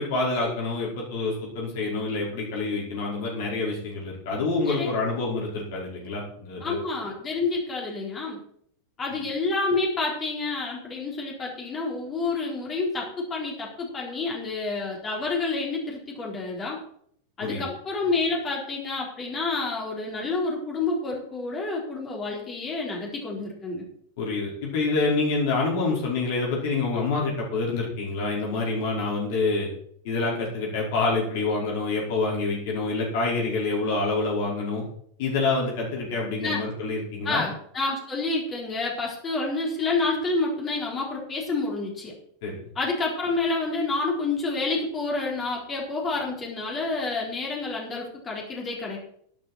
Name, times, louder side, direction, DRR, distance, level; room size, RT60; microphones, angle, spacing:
voice 1, 0.0-6.7 17.4-17.6 24.2-29.7 30.0-34.8 35.2-37.4 42.4-42.6, left 3 dB, 50° left, -3 dB, 5.1 m, -27 dB
voice 2, 6.6-8.4 9.0-16.8 17.4-23.8 36.4-36.6 37.2-42.1 42.7-49.0, left 3 dB, 25° left, -2 dB, 4.1 m, -29 dB
12.0 x 10.5 x 4.5 m, 0.64 s
figure-of-eight pair, 90°, 0 cm